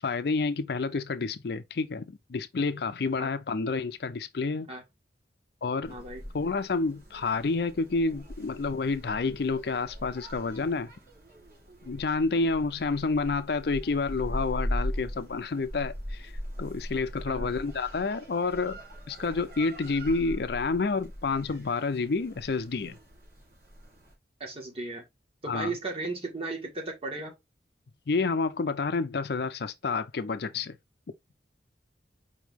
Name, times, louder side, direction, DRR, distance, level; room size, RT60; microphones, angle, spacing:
voice 1, 0.0-4.7 5.6-6.0 6.3-10.9 11.8-16.3 16.6-18.8 19.1-23.0 25.5-25.7 28.1-30.8, left 4 dB, 60° left, 0.5 m, -29 dB
sound 1, 5.8-24.1, equal, 55° right, 2.5 m, -40 dB
voice 2, 5.9-6.2 17.3-17.5 24.4-25.0 25.4-27.3, right 3 dB, 35° right, 1.6 m, -35 dB
4.9 x 3.1 x 3.5 m
head